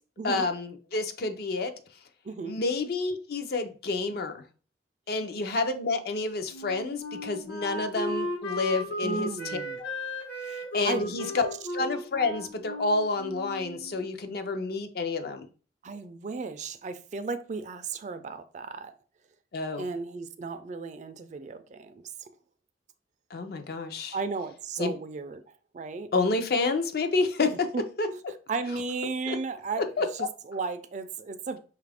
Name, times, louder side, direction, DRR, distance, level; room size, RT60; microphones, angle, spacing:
voice 1, 0.2-1.7 2.4-4.4 5.1-9.6 10.7-11.5 11.7-15.5 19.5-19.8 23.3-24.2 24.8-24.9 26.1-27.7 28.0-28.1 29.3-29.4 30.0-30.3, left 3 dB, 55° left, 0.5 m, -29 dB
voice 2, 2.2-2.6 9.0-9.8 10.4-11.3 15.8-19.0 19.8-22.3 24.1-25.4 25.7-26.1 27.7-27.8 28.1-28.2 28.5-31.6, right 4 dB, 40° right, 0.3 m, -35 dB
Wind instrument woodwind instrument, 6.5-14.0, left 1 dB, 75° left, 1.0 m, -35 dB
5.4 x 2.4 x 3.3 m
head